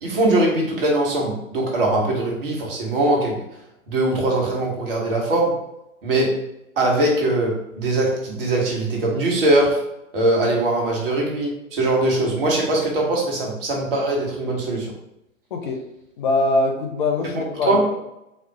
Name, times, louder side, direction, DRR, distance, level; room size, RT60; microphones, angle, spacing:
voice 1, 0.0-3.4 3.9-5.6 6.0-6.4 6.8-9.8 10.1-14.9 17.3-17.9, right 2 dB, 45° right, -1 dB, 1.4 m, -21 dB
voice 2, 15.5-15.8 16.2-17.9, left 2 dB, 40° left, 3 dB, 0.6 m, -22 dB
4.2 x 2.4 x 4.2 m, 0.84 s
figure-of-eight pair, 115°, 40 cm